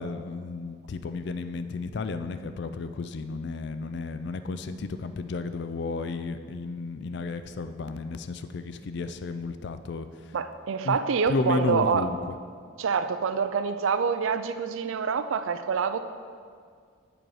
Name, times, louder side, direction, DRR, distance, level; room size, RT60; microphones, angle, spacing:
voice 1, 0.0-10.1 10.8-11.0 11.3-12.2, left 3 dB, 55° left, 10 dB, 0.4 m, -32 dB
voice 2, 10.3-12.1 12.8-16.0, right 6 dB, 75° right, 10 dB, 0.4 m, -26 dB
9.1 x 5.0 x 4.7 m, 2.1 s
head